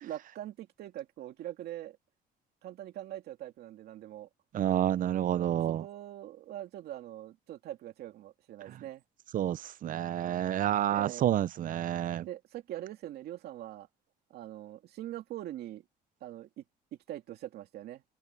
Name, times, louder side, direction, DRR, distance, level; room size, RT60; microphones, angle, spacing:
voice 1, 0.0-2.0 2.6-4.3 5.3-9.0 10.2-10.4 10.9-11.3 12.3-13.9 14.3-15.8 16.2-16.6 17.1-18.0, right 13 dB, 70° right, 2.4 m, -43 dB
voice 2, 4.5-5.9 8.7-8.8 9.3-12.3, right 11 dB, 55° right, 0.7 m, -29 dB
cardioid pair, 110°, 17 cm